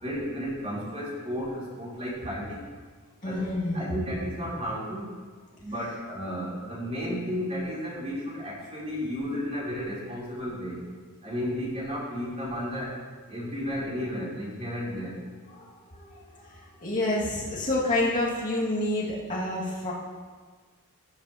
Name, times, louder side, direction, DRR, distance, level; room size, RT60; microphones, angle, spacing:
voice 1, 0.0-2.4 3.2-3.4 3.7-5.0 5.6-10.7 11.2-12.9 13.3-15.1, equal, 30° right, -6 dB, 3.7 m, -33 dB
voice 2, 3.2-3.8 15.5-19.9, left 1 dB, 35° left, -7 dB, 2.3 m, -29 dB
17.0 x 8.8 x 3.0 m, 1.5 s
head